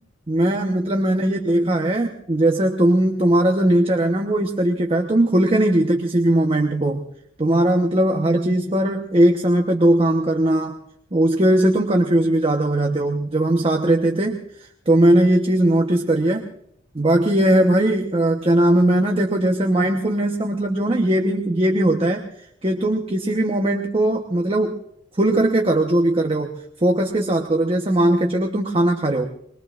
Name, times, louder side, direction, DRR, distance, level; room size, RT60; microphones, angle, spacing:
voice 1, 0.3-7.0 7.4-10.8 11.1-16.4 16.9-22.2 22.6-24.8 25.2-26.5 26.8-29.3, right 1 dB, 30° right, 3 dB, 1.1 m, -19 dB
24.5 x 22.0 x 2.5 m, 0.70 s
head